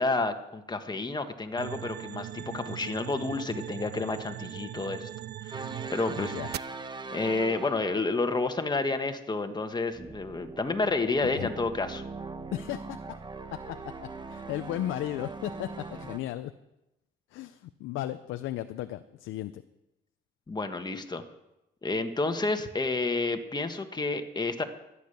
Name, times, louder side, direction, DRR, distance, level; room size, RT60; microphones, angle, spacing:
voice 1, 0.0-5.1 5.4-6.6 7.1-12.0 20.5-21.2 21.8-24.6, left 3 dB, 20° left, 7 dB, 1.5 m, -30 dB
sound 1, 1.6-6.6, right 12 dB, 55° right, 0.4 m, -40 dB
sound 2, 5.5-8.2 9.9-16.2, right 3 dB, 20° right, 1.0 m, -41 dB
voice 2, 6.1-6.5 11.3-11.5 12.5-13.0 13.7-13.8 14.3-16.5 17.3-19.6, left 14 dB, 90° left, 10 dB, 0.6 m, -35 dB
13.5 x 9.7 x 6.8 m, 0.93 s
cardioid pair, 90°, 20 cm